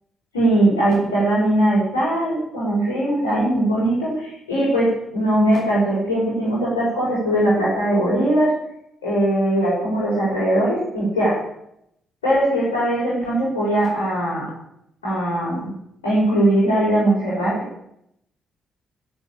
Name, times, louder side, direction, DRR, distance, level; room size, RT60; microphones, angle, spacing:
voice 1, 0.3-8.5 9.0-11.4 12.2-14.5 15.0-15.7 16.0-17.6, right 1 dB, 75° left, -9 dB, 6.2 m, -20 dB
18.5 x 7.4 x 8.8 m, 0.77 s
figure-of-eight pair, 40°, 0 cm